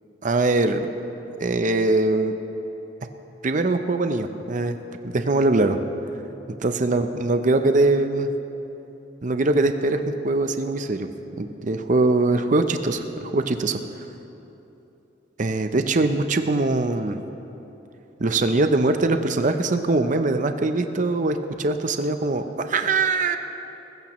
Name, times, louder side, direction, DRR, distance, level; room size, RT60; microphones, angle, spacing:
voice 1, 0.2-0.9 1.4-2.3 3.4-4.8 5.0-5.8 6.6-8.3 9.2-11.1 11.4-13.8 15.4-17.2 18.2-23.4, right 2 dB, 45° right, 8 dB, 0.6 m, -22 dB
20.5 x 15.0 x 3.1 m, 3.0 s
head